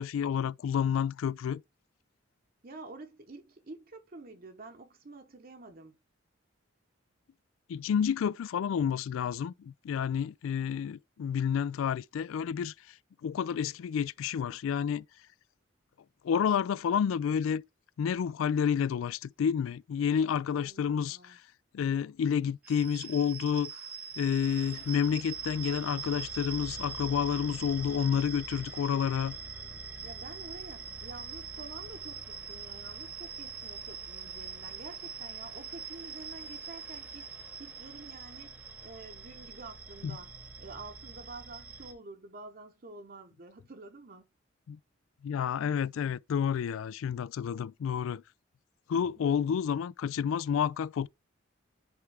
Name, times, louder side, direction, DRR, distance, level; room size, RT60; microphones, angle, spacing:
voice 1, 0.0-1.6 7.7-12.7 13.2-15.0 16.2-17.6 18.0-21.4 21.7-23.7 24.2-29.4 40.0-40.1 44.7-44.8 45.2-48.2 48.9-51.1, left 7 dB, 75° left, 0.3 m, -30 dB
voice 2, 2.6-6.0 20.4-21.4 30.0-37.3 37.6-40.3 40.6-44.3 49.2-49.4, right 3 dB, 45° right, 0.8 m, -48 dB
sound 1, 22.6-41.9, right 5 dB, 5° right, 1.0 m, -43 dB
9.7 x 3.5 x 3.4 m
head